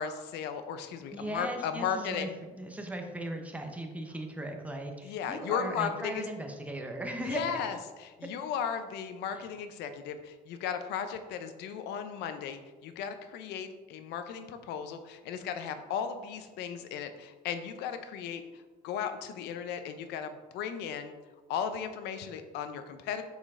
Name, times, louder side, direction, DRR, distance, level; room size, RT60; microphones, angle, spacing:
voice 1, 0.0-2.3 5.0-6.3 7.3-7.8 8.0-21.1 21.5-23.2, left 7 dB, 85° left, 9 dB, 0.6 m, -36 dB
voice 2, 1.1-2.3 2.6-7.7, right 1 dB, 10° right, 3 dB, 0.9 m, -37 dB
6.3 x 5.1 x 3.7 m, 1.3 s
cardioid pair, 110°, 17 cm